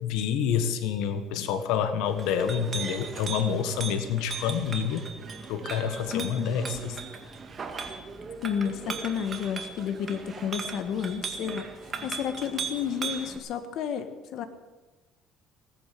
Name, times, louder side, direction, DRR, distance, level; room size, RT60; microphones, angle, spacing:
voice 1, 0.0-5.0 5.5-7.0, left 7 dB, 90° left, 9 dB, 1.4 m, -28 dB
Chink clink, 2.0-13.4, right 5 dB, 30° right, 2.0 m, -38 dB
voice 2, 6.1-6.5 8.4-11.7 12.0-14.4, left 8 dB, 65° left, 8 dB, 1.4 m, -31 dB
18.0 x 10.5 x 7.8 m, 1.2 s
cardioid pair, 130°, 0 cm